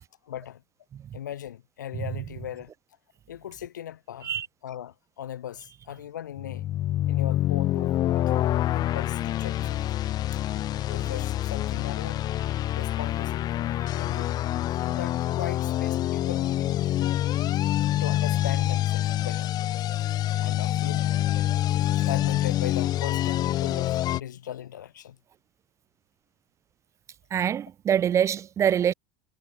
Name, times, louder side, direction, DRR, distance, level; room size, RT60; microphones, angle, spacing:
voice 1, 0.2-0.6 1.1-2.7 3.3-4.3 4.6-6.7 7.1-10.0 10.3-10.4 10.8-12.3 12.7-13.6 13.9-14.4 14.8-17.1 17.9-19.5 20.4-21.1 22.0-25.2, left 11 dB, 75° left, 3.0 m, -38 dB
sound 1, 6.4-24.2, left 13 dB, 40° left, 1.0 m, -26 dB
voice 2, 27.3-28.9, right 9 dB, 30° right, 0.4 m, -25 dB
figure-of-eight pair, 70°, 10 cm